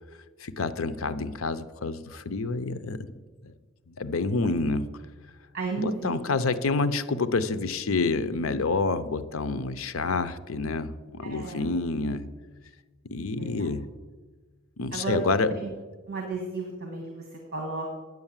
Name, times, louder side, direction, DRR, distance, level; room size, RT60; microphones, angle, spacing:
voice 1, 0.4-3.1 3.4-3.5 3.9-4.9 5.8-12.3 13.1-13.9 14.8-15.5, left 3 dB, 70° left, 13 dB, 0.6 m, -28 dB
voice 2, 5.5-6.2 11.2-11.7 13.4-13.7 14.9-15.2 15.6-15.7 16.1-17.9, right 3 dB, 50° right, 1 dB, 1.7 m, -33 dB
9.7 x 7.7 x 7.3 m, 1.4 s
head